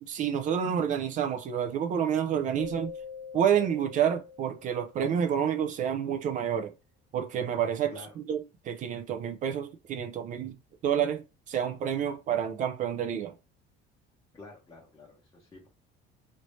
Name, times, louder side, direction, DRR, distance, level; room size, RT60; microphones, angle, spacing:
voice 1, 0.0-2.9 3.3-6.7 7.1-10.6 10.8-13.3, right 8 dB, 40° right, 0.4 m, -29 dB
Keyboard (musical), 2.6-5.3, left 6 dB, 60° left, 0.9 m, -44 dB
voice 2, 14.3-15.7, left 3 dB, 15° left, 0.7 m, -49 dB
3.1 x 2.7 x 3.1 m
cardioid pair, 160°, 21 cm